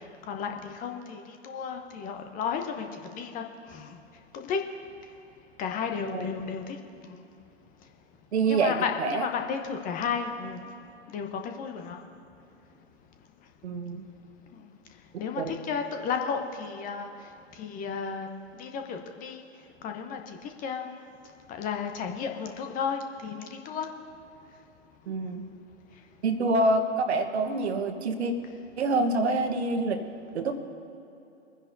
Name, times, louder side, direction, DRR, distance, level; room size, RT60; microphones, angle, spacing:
voice 1, 0.3-4.0 4.3-4.6 5.6-6.8 7.0-7.2 8.5-10.6 11.1-12.0 14.5-14.6 15.2-17.1 17.5-18.3 18.6-19.4 19.8-21.0 21.5-23.9, left 6 dB, 25° left, 4 dB, 0.9 m, -33 dB
voice 2, 8.3-8.7 9.0-9.3 13.6-14.0 15.4-15.5 25.1-25.4 26.2-28.3 28.8-30.0 30.3-30.6, right 3 dB, 65° right, 7 dB, 1.3 m, -26 dB
23.0 x 10.0 x 2.7 m, 2.8 s
figure-of-eight pair, 115°, 35 cm